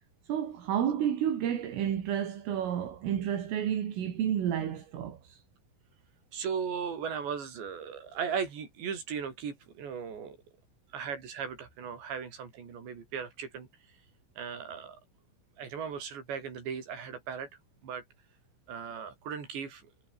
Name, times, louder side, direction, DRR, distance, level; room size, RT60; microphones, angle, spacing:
voice 1, 0.3-5.4, right 9 dB, 80° right, 5.7 m, -31 dB
voice 2, 6.3-10.4 10.9-13.7 14.4-15.0 15.6-17.5 17.8-18.0 18.7-19.9, right 6 dB, 60° right, 7.4 m, -37 dB
omnidirectional pair, 5.8 m